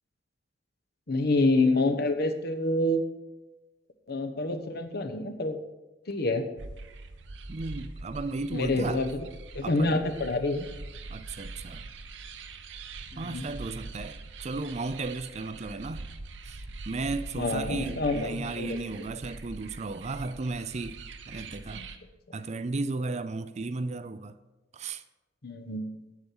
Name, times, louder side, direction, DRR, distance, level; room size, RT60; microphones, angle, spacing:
voice 1, 1.1-3.0 4.1-5.6 6.1-6.4 8.5-9.1 9.5-10.6 13.1-13.5 17.4-19.1 21.7-21.9 25.4-25.9, left 2 dB, 55° left, 1.1 m, -27 dB
sound 1, 6.6-22.0, right 3 dB, 70° right, 0.8 m, -43 dB
voice 2, 7.5-9.1 9.6-10.0 11.1-11.9 13.2-16.0 16.4-21.0 21.2-21.9 22.3-24.4 24.7-25.0, right 3 dB, 35° right, 0.5 m, -35 dB
8.6 x 8.4 x 6.1 m
head